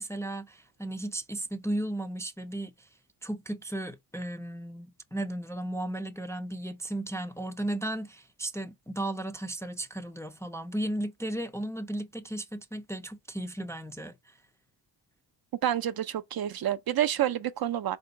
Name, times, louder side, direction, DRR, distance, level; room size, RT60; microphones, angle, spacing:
voice 1, 0.0-2.9 3.2-14.4, right 1 dB, 5° left, 0.4 m, -35 dB
voice 2, 15.6-18.0, right 11 dB, 55° right, 0.5 m, -28 dB
3.7 x 2.6 x 3.8 m
cardioid pair, 80°, 44 cm